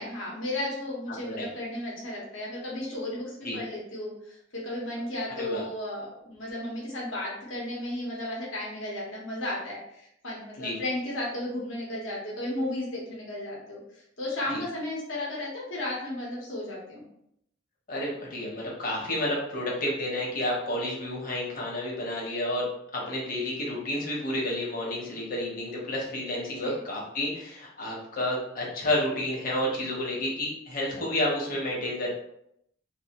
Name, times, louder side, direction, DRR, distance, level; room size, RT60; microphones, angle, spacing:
voice 1, 0.0-13.8 14.2-17.0 26.6-26.8, left 1 dB, 85° left, -4 dB, 0.9 m, -34 dB
voice 2, 17.9-22.7 22.9-32.1, left 1 dB, 50° left, -3 dB, 0.9 m, -30 dB
2.6 x 2.4 x 2.9 m, 0.75 s
head